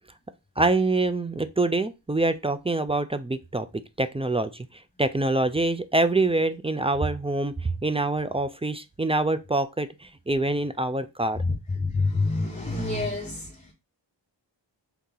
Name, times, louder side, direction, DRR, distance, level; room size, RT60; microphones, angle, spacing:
voice 1, 0.6-3.7 4.0-4.7 5.0-7.5 7.8-9.9 10.3-11.4, right 2 dB, 15° right, 0.3 m, -25 dB
voice 2, 11.4-13.7, left 3 dB, 15° left, 0.9 m, -27 dB
3.5 x 2.8 x 3.8 m
wide cardioid pair, 45°, 45 cm